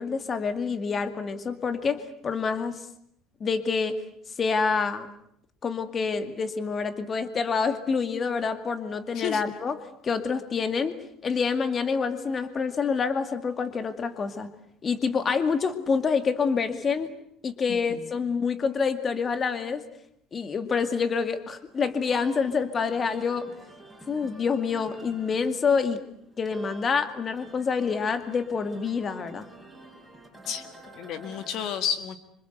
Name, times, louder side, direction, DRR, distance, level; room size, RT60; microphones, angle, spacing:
voice 1, 0.0-2.8 3.4-3.9 4.4-5.1 5.6-9.8 10.0-11.0 11.2-14.5 14.8-17.1 17.4-19.8 20.3-23.5 24.1-26.0 26.4-29.5, left 5 dB, 25° left, 10 dB, 2.2 m, -27 dB
voice 2, 17.7-18.1 30.5-30.6 30.9-32.2, left 8 dB, 55° left, 11 dB, 1.8 m, -31 dB
sound 1, 21.7-31.7, right 1 dB, ahead, 7.9 m, -49 dB
27.0 x 26.0 x 8.1 m, 0.70 s
cardioid pair, 155°, 0 cm